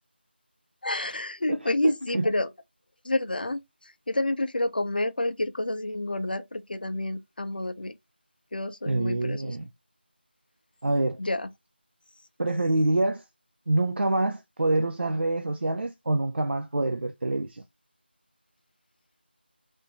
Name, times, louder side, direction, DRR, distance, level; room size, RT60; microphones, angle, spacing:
voice 1, 0.8-2.5 3.0-3.6 4.1-7.9 8.5-9.6 11.2-11.5, left 2 dB, 55° left, 0.6 m, -29 dB
voice 2, 1.5-2.3 8.9-9.7 10.8-11.2 12.4-13.2 13.7-17.6, right 2 dB, 75° right, 0.5 m, -26 dB
3.4 x 2.6 x 2.9 m
figure-of-eight pair, 175°, 6 cm